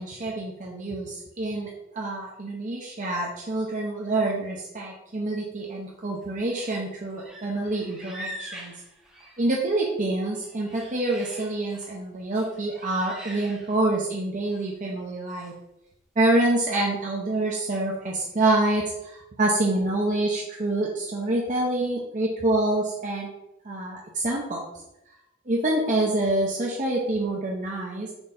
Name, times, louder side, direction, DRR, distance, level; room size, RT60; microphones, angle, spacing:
voice 1, 0.0-1.7 1.9-8.7 9.4-15.5 16.2-23.3 23.6-24.7 25.5-28.1, right 2 dB, 40° right, -2 dB, 0.8 m, -26 dB
sound 1, 6.2-6.8 7.1-9.8 10.2-12.0 12.3-14.1 14.4-14.7 15.3-15.5, equal, 5° right, 1.2 m, -44 dB
4.5 x 3.9 x 5.5 m, 0.87 s
head